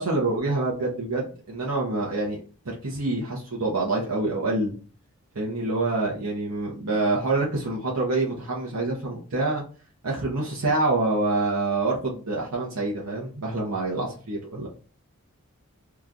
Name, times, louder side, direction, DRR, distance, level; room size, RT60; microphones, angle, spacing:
voice 1, 0.0-2.4 2.6-4.7 5.3-9.6 10.0-14.7, right 2 dB, 90° right, -3 dB, 0.9 m, -26 dB
3.0 x 2.4 x 3.7 m, 0.39 s
head